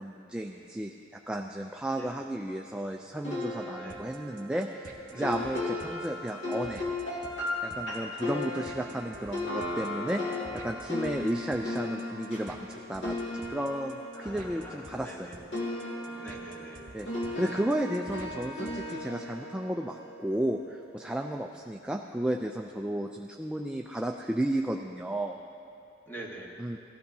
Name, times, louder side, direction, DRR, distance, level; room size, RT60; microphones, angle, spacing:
voice 1, 0.0-6.8 7.6-15.3 16.9-25.4 26.6-26.8, right 1 dB, 5° right, 2 dB, 0.3 m, -33 dB
sound 1, 3.2-15.2 15.5-20.7, left 2 dB, 80° left, 2.1 m, -36 dB
sound 2, 3.9-19.1, right 2 dB, 50° right, 1.0 m, -51 dB
voice 2, 5.1-5.6 8.6-9.2 14.1-15.4 16.2-16.8 26.1-26.5, right 1 dB, 10° left, -2 dB, 1.3 m, -45 dB
17.5 x 13.0 x 2.7 m, 2.8 s
head